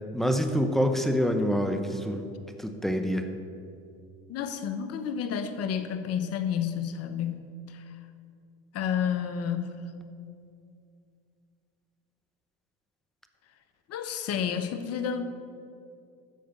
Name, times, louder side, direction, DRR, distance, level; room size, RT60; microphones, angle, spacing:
voice 1, 0.1-2.2 2.6-3.3, equal, ahead, 6 dB, 0.9 m, -26 dB
voice 2, 4.3-7.8 8.7-9.9 13.9-15.2, left 8 dB, 50° left, 10 dB, 1.0 m, -30 dB
13.0 x 5.0 x 6.8 m, 2.5 s
supercardioid pair, 90°, 33 cm